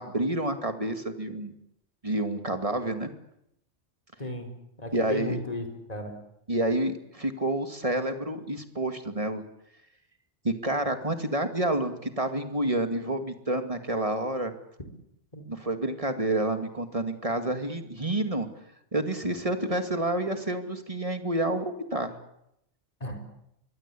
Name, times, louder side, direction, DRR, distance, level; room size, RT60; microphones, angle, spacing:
voice 1, 0.0-1.5 2.0-3.1 4.9-5.4 6.5-9.4 10.4-14.5 15.5-18.5 18.9-22.1, right 1 dB, 30° right, 7 dB, 2.3 m, -29 dB
voice 2, 4.2-6.2 15.3-15.4 23.0-23.2, left 1 dB, 30° left, 5 dB, 4.6 m, -35 dB
25.0 x 22.5 x 8.6 m, 0.79 s
omnidirectional pair, 1.2 m